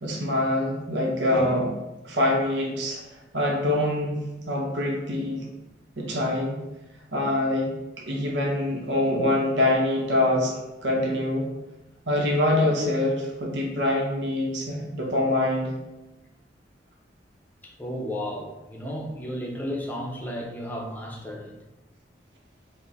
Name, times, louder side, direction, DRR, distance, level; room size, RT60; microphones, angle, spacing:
voice 1, 0.0-1.7 2.0-3.0 3.3-4.2 4.5-5.5 6.0-6.6 7.1-10.5 10.8-11.5 12.1-15.7, left 1 dB, 85° right, -1 dB, 0.8 m, -24 dB
voice 2, 17.6-21.6, equal, 10° left, 0 dB, 0.6 m, -33 dB
5.1 x 2.1 x 3.9 m, 1.0 s
head